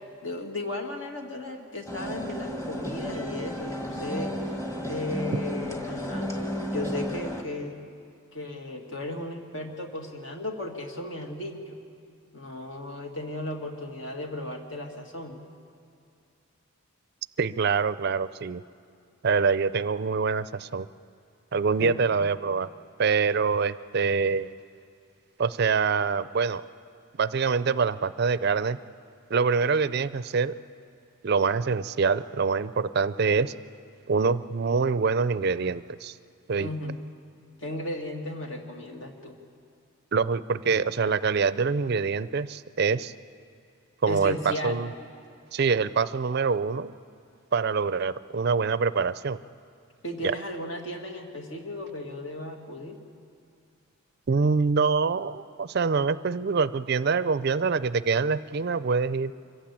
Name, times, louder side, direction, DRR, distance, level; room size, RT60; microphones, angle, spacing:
voice 1, 0.2-4.3 4.9-6.3 6.7-7.8 8.3-11.8 12.3-15.4 21.8-22.0 36.6-37.0 37.6-39.4 44.1-44.8 50.0-53.0, left 1 dB, 60° left, 3 dB, 2.2 m, -35 dB
sound 1, 1.9-7.4, equal, 15° left, 1.6 m, -33 dB
voice 2, 17.4-18.6 19.2-20.9 21.5-22.7 23.0-24.5 25.4-26.6 27.2-28.8 29.3-30.6 31.2-33.5 34.1-36.1 36.5-36.7 40.1-43.1 44.0-44.9 45.5-46.9 47.5-49.4 50.2-50.4 54.3-59.3, right 5 dB, 50° right, 15 dB, 0.4 m, -25 dB
25.5 x 15.0 x 8.6 m, 2.4 s
head